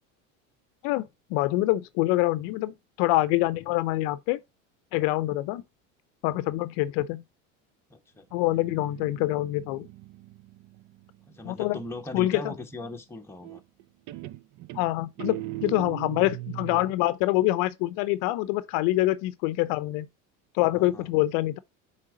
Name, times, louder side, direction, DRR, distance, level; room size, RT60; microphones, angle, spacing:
voice 1, 0.8-4.4 4.9-5.6 6.2-7.2 8.3-9.9 11.4-11.8 12.1-12.5 14.7-20.1 20.5-21.6, left 17 dB, 65° left, 0.6 m, -25 dB
voice 2, 7.9-8.2 11.3-13.6 20.7-21.1, left 2 dB, 5° left, 1.0 m, -39 dB
Guitar, 8.3-11.9 13.4-13.8 14.1-17.0, right 16 dB, 50° right, 0.5 m, -40 dB
8.1 x 3.5 x 3.7 m
supercardioid pair, 95°, 38 cm